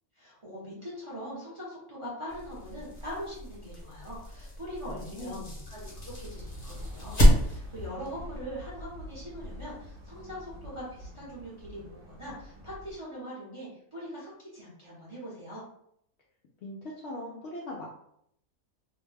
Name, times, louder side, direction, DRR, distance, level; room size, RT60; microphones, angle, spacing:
voice 1, 0.2-15.6, equal, 25° right, -7 dB, 0.7 m, -42 dB
sound 1, 2.3-7.9, equal, 40° left, 1.0 m, -28 dB
voice 2, 4.9-5.7 16.6-17.9, left 1 dB, 70° left, -3 dB, 0.6 m, -40 dB
sound 2, 5.8-13.0, equal, 65° right, 1.1 m, -46 dB
2.6 x 2.1 x 3.2 m, 0.71 s
omnidirectional pair, 1.6 m